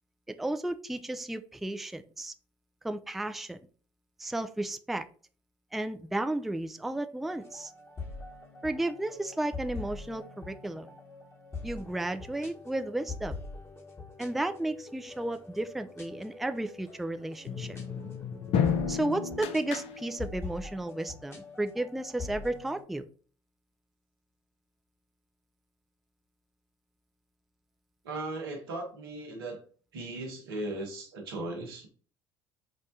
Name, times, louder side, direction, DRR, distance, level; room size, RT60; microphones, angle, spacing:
voice 1, 0.3-2.3 2.8-3.6 4.2-5.0 5.7-7.7 8.6-10.9 11.6-13.3 14.2-17.8 18.9-23.0, right 1 dB, ahead, 8 dB, 0.3 m, -33 dB
sound 1, 7.2-22.8, left 3 dB, 20° left, 1.1 m, -44 dB
sound 2, 17.5-20.4, left 7 dB, 55° left, 0.5 m, -32 dB
voice 2, 28.0-29.6 29.9-31.9, right 2 dB, 80° right, 2 dB, 0.9 m, -37 dB
4.7 x 2.1 x 2.7 m, 0.41 s
hypercardioid pair, 60°, 12 cm